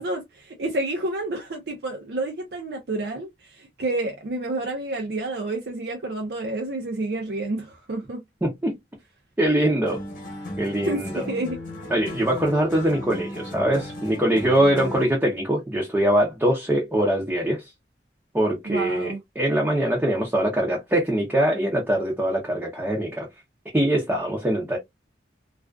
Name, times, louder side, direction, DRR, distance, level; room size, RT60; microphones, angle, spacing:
voice 1, 0.0-8.2 10.9-11.6 18.6-19.2, right 2 dB, 60° right, 0.5 m, -29 dB
voice 2, 8.4-8.7 9.4-10.0 10.6-11.2 11.9-17.6 18.3-23.3 23.7-24.8, right 1 dB, 10° right, 0.5 m, -23 dB
sound 1, 9.9-15.2, left 1 dB, 45° left, 0.9 m, -36 dB
2.4 x 2.3 x 2.2 m
head